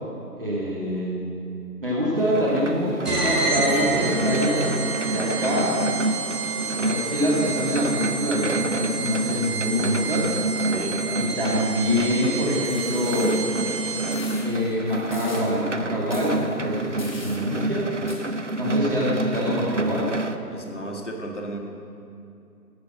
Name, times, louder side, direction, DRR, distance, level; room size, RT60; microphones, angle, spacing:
voice 1, 0.4-1.2 1.8-5.8 6.8-10.3 11.1-13.4 14.4-17.9 18.5-20.1, equal, 35° right, -6 dB, 2.1 m, -25 dB
sound 1, 2.1-20.4, right 2 dB, 50° right, 0.5 m, -29 dB
sound 2, 3.0-14.4, right 4 dB, 75° right, 3.2 m, -30 dB
voice 2, 10.7-11.3 18.7-19.0 20.5-21.6, right 1 dB, 45° left, 2 dB, 1.4 m, -35 dB
sound 3, 12.6-13.4 14.1-14.4 15.1-15.4 16.1-16.3 17.0-17.4 18.1-18.2, left 1 dB, 30° left, 1.4 m, -40 dB
14.0 x 6.1 x 6.3 m, 2.6 s
figure-of-eight pair, 160°, 48 cm